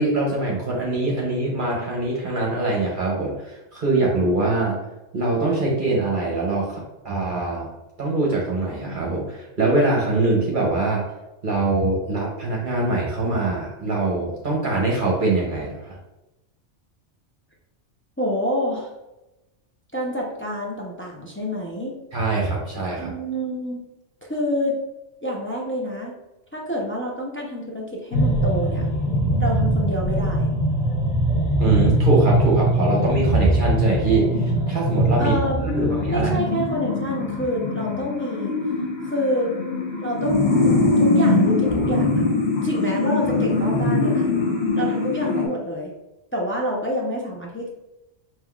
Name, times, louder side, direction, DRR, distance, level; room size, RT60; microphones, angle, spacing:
voice 1, 0.0-4.8 5.1-7.7 8.0-11.1 11.4-16.0 22.1-23.1 31.6-36.4, right 2 dB, 45° right, -2 dB, 0.8 m, -23 dB
voice 2, 18.2-18.9 19.9-21.9 23.0-23.8 24.2-24.8 25.2-26.1 26.5-28.9 29.4-30.5 35.2-38.6 39.0-39.5 40.0-42.2 42.6-44.3 44.7-45.9 46.3-47.7, equal, 20° left, -3 dB, 0.3 m, -27 dB
sound 1, 28.1-45.5, left 1 dB, 55° left, 1.0 m, -22 dB
5.5 x 2.9 x 2.3 m, 0.98 s
omnidirectional pair, 1.3 m